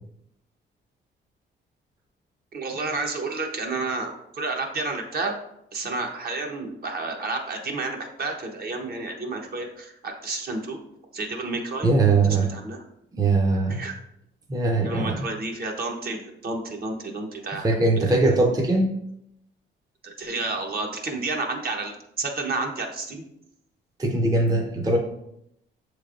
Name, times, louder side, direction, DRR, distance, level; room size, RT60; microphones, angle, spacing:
voice 1, 2.5-5.4 5.7-10.8 11.1-11.9 12.2-12.8 13.7-13.9 14.8-17.8 20.0-23.2, right 3 dB, 50° right, 2 dB, 0.9 m, -30 dB
voice 2, 11.8-12.5 13.1-13.8 14.5-15.3 17.6-18.9 24.0-25.0, right 3 dB, 20° right, 2 dB, 0.6 m, -21 dB
6.6 x 3.2 x 2.5 m, 0.77 s
cardioid pair, 90°, 20 cm